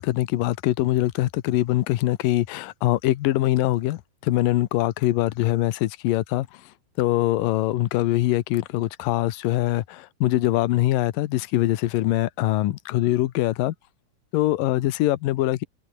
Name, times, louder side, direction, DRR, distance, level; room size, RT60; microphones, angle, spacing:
voice 1, 0.0-13.7 14.3-15.6, left 15 dB, 80° left, 2.7 m, -23 dB
omnidirectional pair, 3.9 m